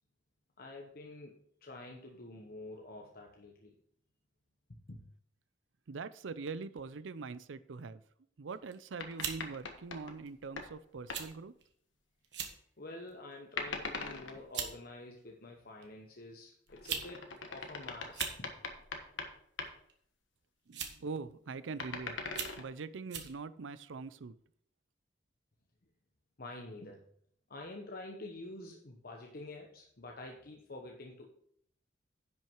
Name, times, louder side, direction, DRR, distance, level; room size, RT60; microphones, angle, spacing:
voice 1, 0.6-3.7 4.7-5.0 12.8-18.5 26.4-27.1 27.5-31.3, left 2 dB, 50° left, 1 dB, 1.0 m, -48 dB
voice 2, 5.9-8.0 8.4-11.5 20.7-22.2 22.6-24.4, right 4 dB, 90° right, 15 dB, 0.5 m, -43 dB
sound 1, 8.5-8.8 9.2-9.4 10.3-10.4 11.1-11.3 11.6-11.7 12.2-12.6 13.1-13.4 14.1-14.2 14.5-14.7 15.8-15.9 16.7-17.1 17.4-17.5 18.0-18.4 19.6-19.9 20.7-21.1 21.6-21.7 22.3-22.6 23.1-23.3, right 7 dB, 65° right, 1.3 m, -39 dB
sound 2, 9.0-10.7 11.1-11.3 13.6-14.4 16.7-19.3 19.6-19.7 21.7-22.6, left 4 dB, 90° left, 1.3 m, -41 dB
10.5 x 6.2 x 4.6 m, 0.65 s
head